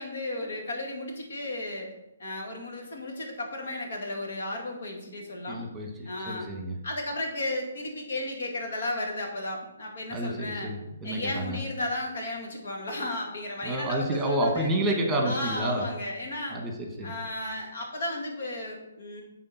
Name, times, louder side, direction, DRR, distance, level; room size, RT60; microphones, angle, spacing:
voice 1, 0.0-1.9 2.2-5.6 6.1-6.5 6.8-10.7 11.0-14.7 15.2-16.6 17.0-19.2, left 2 dB, 65° left, 1 dB, 2.1 m, -34 dB
voice 2, 5.5-6.7 10.1-11.6 13.6-15.9 16.5-17.1, right 1 dB, 10° right, 1 dB, 1.5 m, -29 dB
8.6 x 4.4 x 4.2 m, 0.89 s
hypercardioid pair, 140°, 0 cm